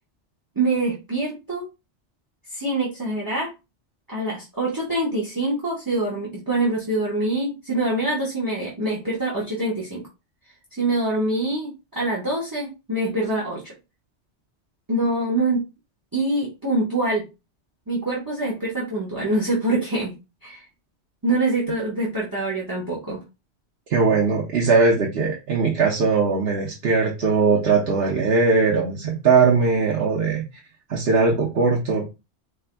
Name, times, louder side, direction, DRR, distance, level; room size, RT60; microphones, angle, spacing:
voice 1, 0.5-1.6 2.5-3.5 4.1-10.0 10.8-13.7 14.9-15.6 16.1-17.2 17.9-20.1 20.4-20.6 21.2-23.2, right 2 dB, 20° right, -6 dB, 1.1 m, -25 dB
voice 2, 23.9-30.4 30.9-32.0, right 4 dB, 60° right, -2 dB, 1.0 m, -20 dB
4.5 x 3.3 x 2.2 m, 0.26 s
omnidirectional pair, 1.2 m